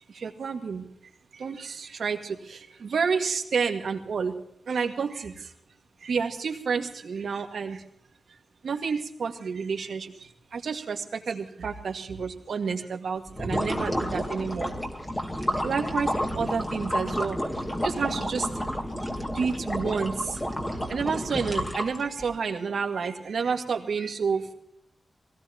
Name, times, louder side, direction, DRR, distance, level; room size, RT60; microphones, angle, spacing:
voice 1, 0.2-0.8 1.4-4.3 4.7-5.3 6.0-7.8 8.6-10.1 10.5-14.7 15.6-17.4 17.8-18.5 19.3-20.4 20.9-24.5, right 5 dB, 80° right, 4 dB, 2.0 m, -29 dB
sound 1, 13.3-22.2, equal, 15° left, 2.4 m, -30 dB
23.5 x 18.0 x 3.0 m, 0.71 s
wide cardioid pair, 135°, 0 cm